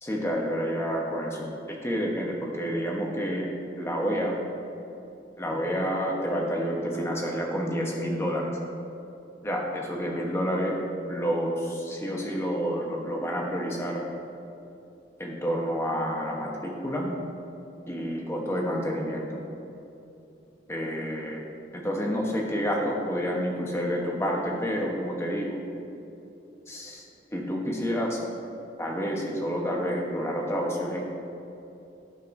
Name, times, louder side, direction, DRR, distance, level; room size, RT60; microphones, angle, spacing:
voice 1, 0.0-3.5 3.8-4.4 5.4-8.5 9.4-10.8 11.1-14.0 15.2-17.1 17.9-19.4 20.7-21.4 21.7-25.6 26.7-27.0 27.3-28.2 28.8-31.0, equal, 15° left, -1 dB, 1.1 m, -29 dB
16.5 x 6.3 x 2.7 m, 2.8 s
head